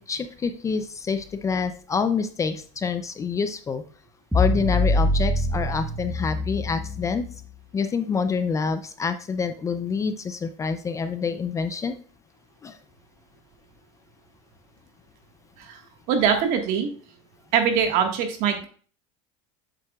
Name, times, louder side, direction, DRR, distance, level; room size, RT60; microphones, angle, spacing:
voice 1, 0.0-3.8 4.3-7.3 7.7-12.0 12.6-12.8, left 5 dB, 20° left, 10 dB, 0.5 m, -27 dB
sound 1, 4.3-7.4, left 1 dB, 5° right, 1.3 m, -24 dB
voice 2, 16.1-16.9 17.5-18.7, right 7 dB, 55° right, 5 dB, 1.6 m, -22 dB
7.6 x 7.5 x 2.4 m, 0.42 s
supercardioid pair, 130°, 15 cm